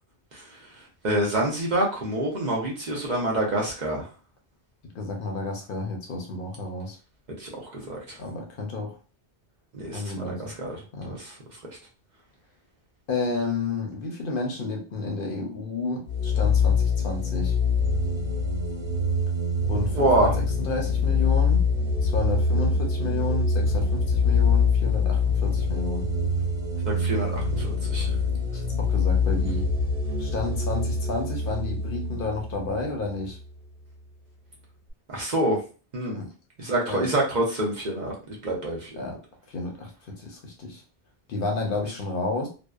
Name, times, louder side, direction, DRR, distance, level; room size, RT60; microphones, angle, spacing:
voice 1, 1.0-4.1 7.4-8.2 9.7-10.8 11.1-11.3 19.9-20.3 26.9-28.1 35.1-35.6 35.9-36.2 36.6-39.1, right 1 dB, 50° right, -2 dB, 0.7 m, -27 dB
voice 2, 4.9-7.0 8.2-9.0 9.9-10.5 10.9-11.2 13.1-17.5 19.7-21.6 22.0-26.1 28.5-29.7 30.2-33.4 36.1-36.3 36.9-37.1 39.0-39.2 39.5-40.8 41.3-42.5, left 3 dB, 60° left, 1 dB, 0.7 m, -31 dB
sound 1, 16.1-33.5, left 4 dB, 70° right, 1.3 m, -24 dB
2.6 x 2.0 x 2.3 m, 0.35 s
omnidirectional pair, 1.1 m